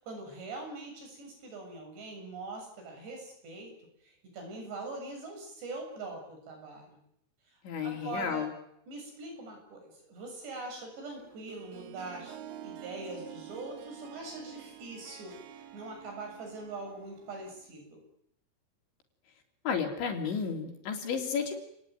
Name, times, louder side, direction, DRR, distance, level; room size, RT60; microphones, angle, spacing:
voice 1, 0.0-3.7 4.0-7.0 7.8-8.5 8.9-12.3 12.6-18.0, right 2 dB, 60° right, 3 dB, 9.3 m, -42 dB
voice 2, 7.6-8.5 19.7-21.6, left 6 dB, 70° left, 3 dB, 5.7 m, -32 dB
Harp, 11.2-17.7, right 11 dB, 85° right, 4.4 m, -48 dB
29.0 x 19.5 x 9.5 m, 0.75 s
omnidirectional pair, 5.5 m